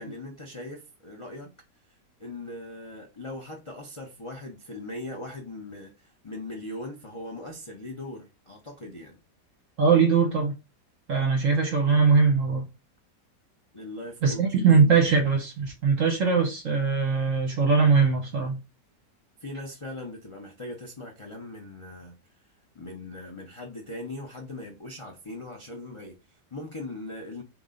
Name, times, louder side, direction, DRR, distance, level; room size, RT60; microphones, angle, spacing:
voice 1, 0.0-1.5 2.2-9.2 13.7-14.7 19.4-22.5 22.7-27.4, left 2 dB, 35° left, 0.5 m, -40 dB
voice 2, 9.8-10.5 11.1-12.6 14.2-18.6, right 5 dB, 55° right, 1.1 m, -21 dB
3.9 x 3.0 x 3.8 m
omnidirectional pair, 1.8 m